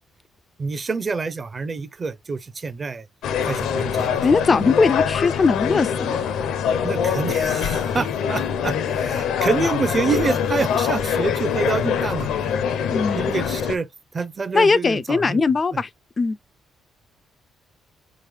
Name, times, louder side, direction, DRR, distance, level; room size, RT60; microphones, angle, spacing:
voice 1, 0.6-3.1 3.4-4.3 6.8-12.6 13.1-15.4, right 4 dB, 35° right, 0.6 m, -27 dB
sound 1, 3.2-13.8, left 7 dB, 80° left, 0.6 m, -24 dB
voice 2, 4.2-6.2 12.9-13.3 14.5-15.9 16.2-16.4, left 4 dB, 35° left, 0.3 m, -20 dB
4.4 x 3.8 x 3.2 m
cardioid pair, 90°, 0 cm